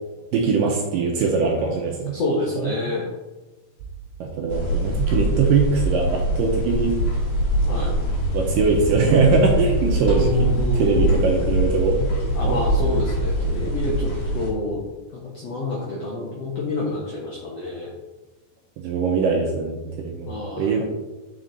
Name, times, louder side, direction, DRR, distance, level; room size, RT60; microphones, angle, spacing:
voice 1, 0.3-2.2 2.6-2.8 4.2-7.0 8.3-12.6 18.8-20.3 20.6-20.8, right 4 dB, 75° right, 0 dB, 2.1 m, -21 dB
voice 2, 2.1-3.1 7.6-8.0 10.0-11.4 12.3-14.8 15.1-17.9 20.3-20.8, left 2 dB, 70° left, -4 dB, 1.5 m, -28 dB
sound 1, 4.5-14.5, right 1 dB, 55° left, 2.2 m, -23 dB
9.2 x 5.1 x 3.9 m, 1.1 s
omnidirectional pair, 4.6 m